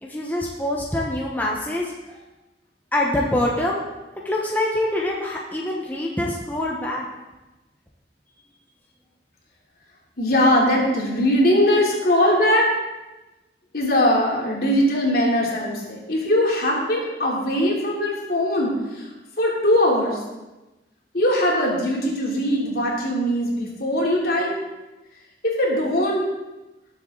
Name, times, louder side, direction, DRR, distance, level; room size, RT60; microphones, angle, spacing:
voice 1, 0.0-2.2 2.9-3.8 4.2-7.1, left 1 dB, 10° left, -3 dB, 1.1 m, -25 dB
voice 2, 10.2-12.7 13.7-19.1 19.4-20.2 21.1-24.5 25.4-26.3, left 1 dB, 60° left, -3 dB, 3.2 m, -21 dB
19.0 x 7.3 x 3.9 m, 1.1 s
head